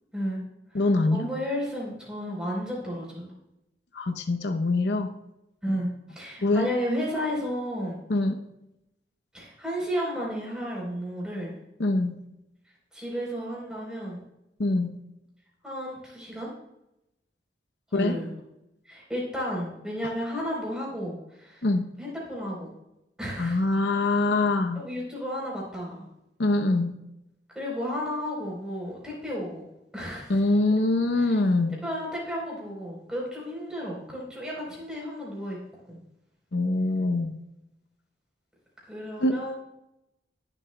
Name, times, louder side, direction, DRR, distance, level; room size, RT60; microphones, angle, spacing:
voice 1, 0.1-0.4 0.7-0.8 1.1-3.3 5.6-8.0 9.3-11.6 12.9-14.2 15.6-16.5 17.9-18.3 18.9-21.7 22.0-22.7 23.2-23.6 24.7-26.1 27.5-29.7 29.9-30.4 31.8-35.6 35.9-36.0 38.9-39.5, equal, 5° right, -4 dB, 3.8 m, -32 dB
voice 2, 0.7-1.3 3.9-5.1 6.4-6.7 8.1-8.4 11.8-12.2 14.6-14.9 17.9-18.2 20.0-20.1 21.6-21.9 23.4-24.8 26.4-26.9 30.3-31.8 36.5-37.4 39.2-39.4, left 2 dB, 75° left, 7 dB, 0.7 m, -24 dB
20.0 x 7.4 x 2.2 m, 0.89 s
head